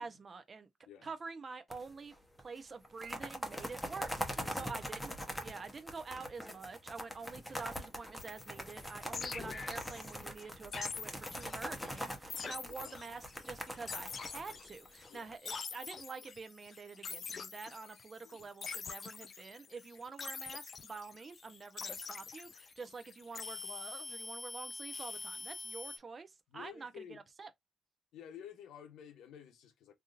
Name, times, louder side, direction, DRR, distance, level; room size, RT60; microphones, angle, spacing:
voice 1, 0.0-0.7 1.0-5.1 5.4-27.5, right 4 dB, 35° right, 0.8 m, -47 dB
sound 1, 1.7-2.1 2.4-2.5 2.8-15.3, equal, 5° left, 1.0 m, -42 dB
voice 2, 4.4-5.1 9.1-9.3 12.7-13.0 15.1-15.3 18.2-18.5 26.5-27.2 28.1-29.9, left 9 dB, 80° left, 0.9 m, -53 dB
sound 2, 8.2-26.0, left 5 dB, 45° left, 0.4 m, -45 dB
3.5 x 2.8 x 2.5 m
cardioid pair, 90°, 0 cm